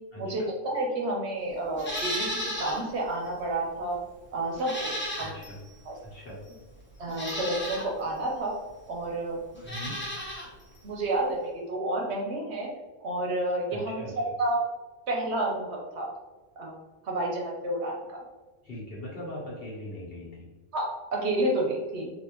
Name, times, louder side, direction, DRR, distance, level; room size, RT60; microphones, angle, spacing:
voice 1, 0.2-4.0 4.3-4.9 5.2-5.4 5.9-6.0 7.0-8.5 8.9-9.4 10.8-12.7 13.0-14.0 14.4-14.6 15.1-16.1 16.6-18.2 20.7-22.1, right 1 dB, 65° right, -1 dB, 0.9 m, -30 dB
Livestock farm animals working animals, 1.8-2.8 3.2-3.3 4.6-5.6 6.4-6.5 7.1-7.9 9.5-10.5 10.7-10.8, equal, 10° left, 0.6 m, -34 dB
voice 2, 5.2-5.6 6.0-6.4 9.6-10.0 13.7-14.2 18.6-20.5, left 1 dB, 50° left, -5 dB, 1.1 m, -40 dB
3.4 x 2.5 x 3.0 m, 1.2 s
omnidirectional pair, 1.3 m